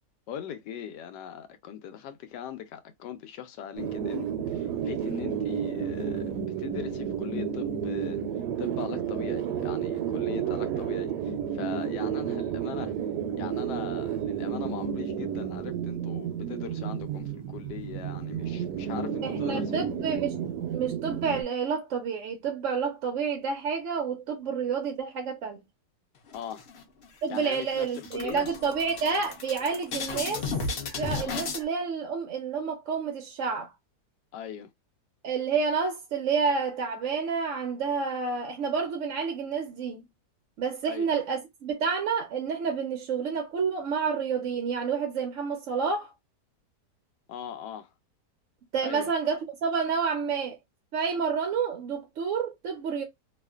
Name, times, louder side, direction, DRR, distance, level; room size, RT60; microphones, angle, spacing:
voice 1, 0.3-8.2 8.6-12.9 13.4-19.8 26.3-26.7 27.3-28.5 34.3-34.7 40.8-41.1 47.3-47.9 48.8-49.1, left 9 dB, 85° left, 1.2 m, -40 dB
sound 1, 3.8-21.4, right 8 dB, 85° right, 1.2 m, -31 dB
voice 2, 19.2-20.4 20.7-25.6 27.2-30.4 31.0-33.7 35.2-40.0 40.6-46.1 48.7-50.6 50.9-53.0, right 5 dB, 65° right, 0.8 m, -29 dB
sound 2, 26.3-27.1 27.4-27.6 27.9-31.6, left 4 dB, 55° left, 0.8 m, -34 dB
2.7 x 2.4 x 2.3 m
omnidirectional pair, 1.8 m